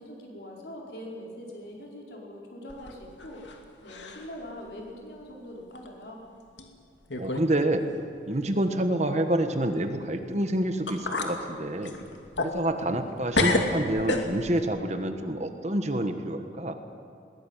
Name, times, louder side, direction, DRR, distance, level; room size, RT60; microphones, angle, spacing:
voice 1, 0.0-3.4 3.8-6.2, equal, 60° left, -1 dB, 5.1 m, -42 dB
sound 1, 2.7-3.6 3.9-4.3 4.8-4.9 5.7-5.9 6.6-6.7 7.1-7.5 7.8-7.9 10.4-10.5 10.9-11.4 11.8-13.1 13.3-14.6, left 2 dB, 80° left, 2.5 m, -29 dB
voice 2, 7.2-7.9 8.2-11.9 12.4-16.8, right 1 dB, 35° right, 7 dB, 1.4 m, -28 dB
21.5 x 19.0 x 9.2 m, 2.4 s
head